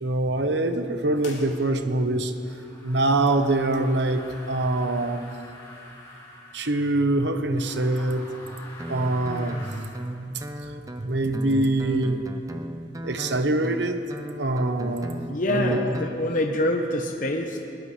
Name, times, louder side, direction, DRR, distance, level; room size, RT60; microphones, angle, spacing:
voice 1, 0.0-2.3 2.8-5.3 6.5-8.2 8.9-10.4 11.0-12.2 13.0-14.0 14.4-15.2 15.5-15.8, right 2 dB, 85° right, 7 dB, 1.0 m, -24 dB
sound 1, 1.2-2.2, left 3 dB, 90° left, 3.0 m, -46 dB
sound 2, 2.3-7.0 7.5-9.9, left 1 dB, 20° left, 2.0 m, -46 dB
Guitar, 8.8-16.2, equal, 20° right, 0.7 m, -37 dB
voice 2, 15.3-17.6, left 1 dB, 50° left, 2 dB, 0.9 m, -25 dB
21.5 x 18.0 x 3.3 m, 2.6 s
head